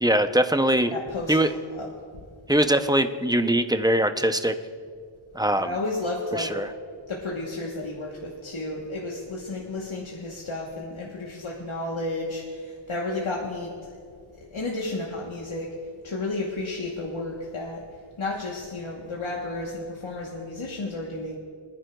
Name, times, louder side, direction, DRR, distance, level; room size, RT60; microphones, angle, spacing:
voice 1, 0.0-0.9 1.3-1.5 2.5-4.6 5.3-5.7 6.3-6.7, right 1 dB, 10° right, 9 dB, 0.5 m, -22 dB
voice 2, 0.9-1.9 5.6-6.6 7.1-14.0 14.4-15.7 16.0-17.8 18.2-21.4, left 2 dB, 80° left, -3 dB, 1.2 m, -32 dB
24.5 x 10.0 x 2.3 m, 2.1 s
wide cardioid pair, 45°, 48 cm